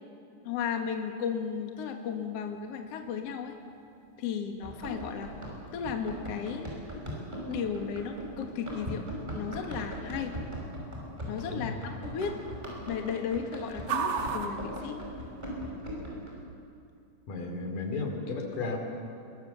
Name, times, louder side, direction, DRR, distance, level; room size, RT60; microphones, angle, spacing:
voice 1, 0.4-3.6 4.2-5.3 5.7-6.7 7.5-9.1 9.3-10.3 11.3-11.7 12.0-12.3 12.9-15.1, left 7 dB, 55° left, 4 dB, 2.3 m, -34 dB
sound 1, 0.9-15.7, right 6 dB, 75° right, 3.0 m, -43 dB
Run, 4.6-16.3, equal, 15° right, 5.3 m, -39 dB
voice 2, 11.5-11.9 17.3-18.8, left 3 dB, 85° left, 3 dB, 4.4 m, -34 dB
22.0 x 22.0 x 7.0 m, 2.5 s
omnidirectional pair, 3.8 m